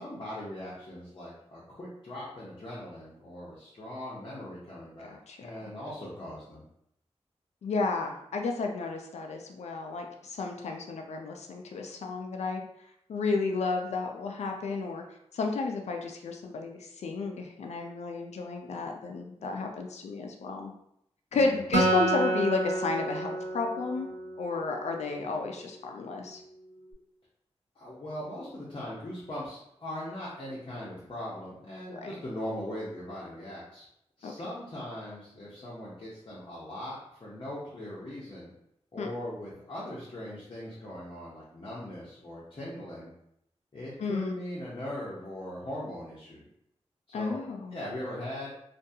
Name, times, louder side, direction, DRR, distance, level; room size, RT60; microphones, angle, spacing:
voice 1, 0.0-5.2 5.4-6.6 21.3-21.8 27.8-33.8 34.2-38.5 38.9-43.1 43.7-46.4 47.1-47.4 47.7-48.5, left 1 dB, 45° left, -8 dB, 0.7 m, -40 dB
voice 2, 5.0-5.7 7.6-12.6 13.1-15.0 15.3-20.7 21.3-24.1 24.4-26.4 31.9-32.1 34.2-34.3 39.0-39.1 44.0-44.3 47.1-47.8, left 4 dB, 75° left, 3 dB, 0.4 m, -32 dB
Acoustic guitar, 21.7-25.2, right 2 dB, 90° right, 0.6 m, -30 dB
2.5 x 2.3 x 2.6 m, 0.75 s
cardioid pair, 65°, 11 cm